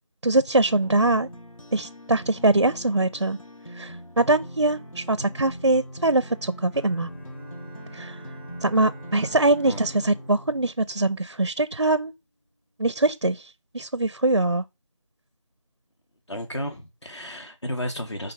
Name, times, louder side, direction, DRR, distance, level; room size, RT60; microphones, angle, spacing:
voice 1, 0.2-1.3 1.7-3.4 3.8-7.1 7.9-8.2 8.6-12.1 12.8-13.4 13.7-14.6, right 2 dB, 50° right, 0.5 m, -23 dB
sound 1, 0.7-10.7, equal, 80° left, 1.8 m, -41 dB
Bowed string instrument, 6.7-11.8, right 1 dB, 20° left, 1.5 m, -48 dB
voice 2, 16.3-18.3, equal, 60° left, 2.4 m, -32 dB
9.9 x 4.5 x 5.1 m
figure-of-eight pair, 175°, 17 cm